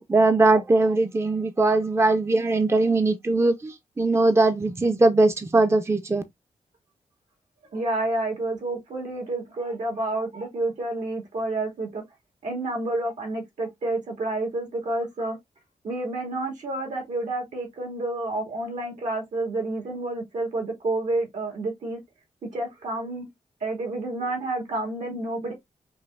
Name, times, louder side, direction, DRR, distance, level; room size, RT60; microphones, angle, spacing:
voice 1, 0.0-6.2, right 2 dB, 20° right, 0.6 m, -21 dB
voice 2, 7.7-12.0 12.4-15.4 15.8-22.0 22.5-23.3 23.6-25.5, right 2 dB, 80° right, 2.3 m, -29 dB
5.5 x 2.6 x 2.5 m
cardioid pair, 60°, 13 cm